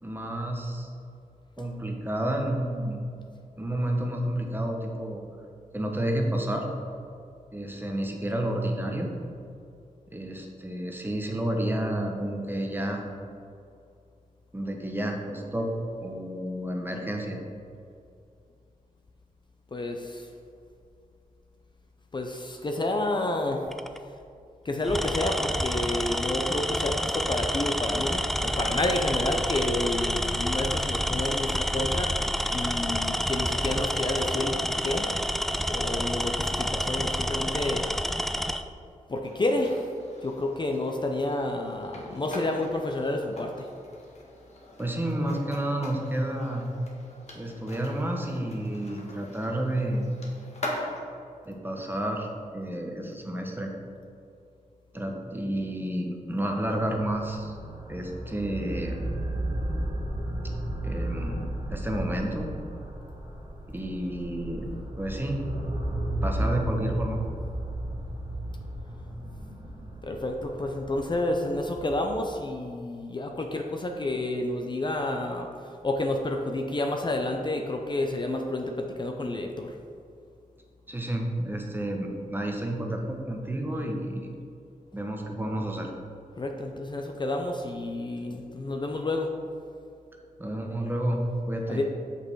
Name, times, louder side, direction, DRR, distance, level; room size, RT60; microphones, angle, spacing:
voice 1, 0.0-0.9 1.6-3.0 3.6-5.2 5.7-6.7 7.5-9.1 10.1-13.1 14.5-15.7 16.0-17.4 44.8-46.6 47.3-50.1 51.4-52.3 52.5-53.7 54.9-57.5 57.9-59.0 60.8-62.5 63.7-64.7 65.0-65.5 66.2-67.2 80.9-84.3 84.9-85.9 90.4-91.2 91.5-91.8, right 1 dB, 15° right, 1 dB, 1.1 m, -30 dB
voice 2, 19.7-20.3 22.1-23.7 24.6-35.1 35.7-37.9 39.1-39.8 40.2-43.7 70.0-75.5 75.8-79.7 86.4-89.3 91.7-91.8, left 2 dB, 35° left, 3 dB, 0.6 m, -30 dB
Tools, 23.7-24.0 24.8-38.6, equal, ahead, 0.3 m, -28 dB
sound 1, 39.2-51.0, left 1 dB, 50° left, 1.5 m, -42 dB
sound 2, 56.5-72.1, right 1 dB, 30° right, 1.5 m, -34 dB
6.5 x 5.5 x 4.6 m, 2.4 s
cardioid pair, 80°, 14 cm